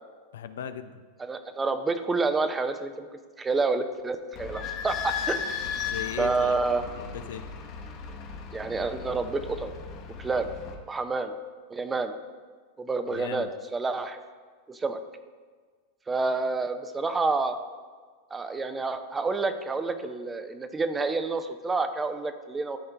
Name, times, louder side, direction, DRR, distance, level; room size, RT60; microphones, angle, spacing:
voice 1, 0.3-1.0 5.7-6.6 6.9-7.4 13.1-13.5, left 8 dB, 80° left, 11 dB, 0.5 m, -38 dB
voice 2, 1.2-3.1 3.4-5.4 6.2-6.8 8.5-9.7 10.2-10.5 10.8-11.3 11.7-12.1 12.8-14.2 14.7-15.0 16.1-17.6 18.3-22.8, right 3 dB, 15° right, 9 dB, 0.6 m, -28 dB
Idling / Squeak, 4.3-10.7, left 6 dB, 45° left, 1.2 m, -36 dB
13.0 x 4.3 x 3.4 m, 1.5 s
hypercardioid pair, 115°, 0 cm